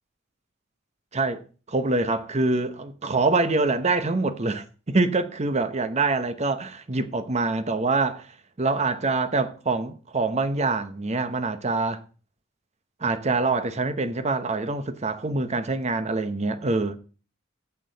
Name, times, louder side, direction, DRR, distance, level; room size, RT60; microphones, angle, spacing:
voice 1, 1.1-1.4 1.7-8.2 8.6-12.0 13.0-17.0, right 3 dB, 35° right, 0.8 m, -25 dB
15.5 x 6.2 x 4.0 m
head